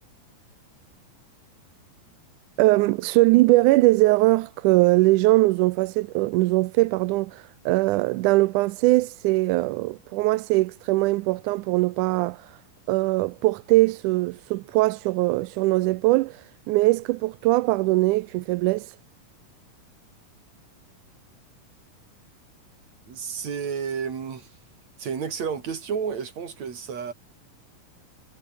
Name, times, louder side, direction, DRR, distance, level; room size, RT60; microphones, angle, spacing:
voice 1, 2.6-12.5 12.9-16.4 16.7-18.9, right 20 dB, 80° right, 1.9 m, -21 dB
voice 2, 23.1-24.5 25.0-27.1, right 6 dB, 55° right, 4.3 m, -31 dB
omnidirectional pair, 4.0 m